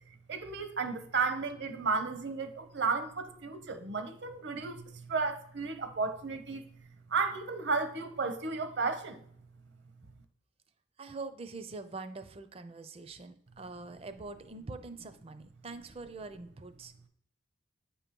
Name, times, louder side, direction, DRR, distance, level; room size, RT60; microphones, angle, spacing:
voice 1, 0.3-6.6 7.1-9.2, right 4 dB, 60° right, 0.8 m, -33 dB
voice 2, 11.0-16.9, right 3 dB, 30° right, 0.5 m, -44 dB
8.7 x 2.9 x 5.2 m
head